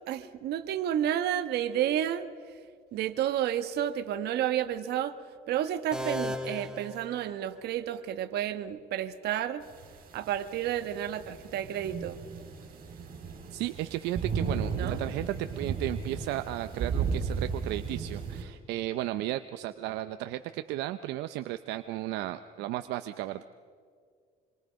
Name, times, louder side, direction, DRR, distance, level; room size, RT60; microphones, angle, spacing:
voice 1, 0.0-2.3 2.9-5.2 5.5-9.6 10.1-12.2 14.8-15.0, right 11 dB, 75° right, 10 dB, 1.3 m, -31 dB
sound 1, 5.9-7.8, equal, 5° right, 2.2 m, -36 dB
sound 2, 9.6-18.4, right 5 dB, 60° right, 5.5 m, -35 dB
voice 2, 13.5-23.4, right 14 dB, 90° right, 10 dB, 0.7 m, -34 dB
26.5 x 23.0 x 5.2 m, 2.1 s
cardioid pair, 110°, 17 cm